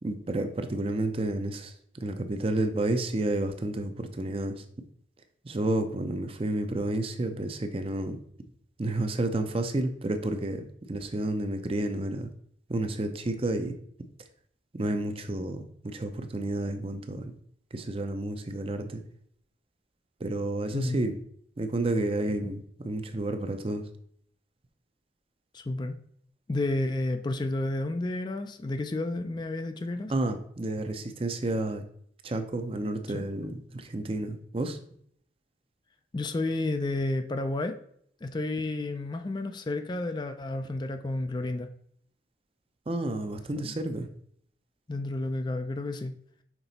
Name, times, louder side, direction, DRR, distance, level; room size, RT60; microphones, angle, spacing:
voice 1, 0.0-4.6 5.4-8.2 8.8-12.3 12.7-13.7 14.7-17.4 17.7-19.0 20.2-21.2 21.6-23.8 30.1-31.8 32.2-34.8 42.9-44.1, right 2 dB, 30° right, 8 dB, 0.5 m, -30 dB
voice 2, 20.7-21.0 25.5-26.0 26.5-30.1 32.8-33.2 36.1-37.8 38.2-41.7 43.6-43.7 44.9-46.1, left 2 dB, 25° left, 8 dB, 0.3 m, -31 dB
5.9 x 3.9 x 4.0 m, 0.64 s
head